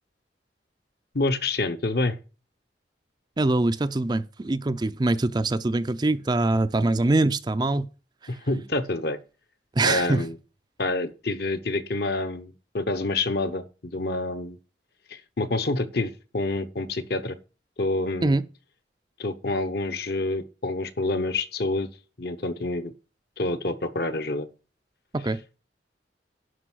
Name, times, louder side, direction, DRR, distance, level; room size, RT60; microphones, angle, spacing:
voice 1, 1.1-2.2 8.3-9.2 9.8-10.4 10.8-13.6 13.9-14.6 15.1-17.4 17.8-18.4 19.2-21.9 22.2-22.9 23.4-24.5, left 2 dB, 55° left, 1.0 m, -27 dB
voice 2, 3.4-7.9 9.8-10.2 18.2-18.4 25.1-25.4, right 2 dB, 25° right, 0.4 m, -23 dB
11.5 x 5.3 x 6.1 m
head